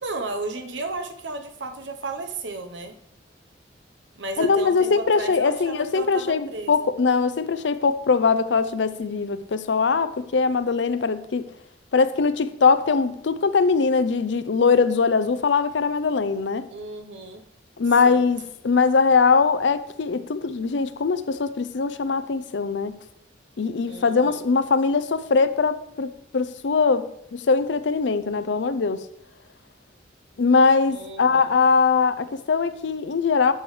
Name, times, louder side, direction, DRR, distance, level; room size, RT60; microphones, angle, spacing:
voice 1, 0.0-3.0 4.2-6.9 16.7-17.4 18.0-18.2 23.8-24.4 30.9-31.5, right 3 dB, 80° right, 0.9 m, -34 dB
voice 2, 4.4-11.5 11.9-16.7 17.8-22.9 23.6-29.0 30.4-33.5, left 4 dB, 75° left, 0.5 m, -21 dB
11.5 x 6.9 x 3.2 m
head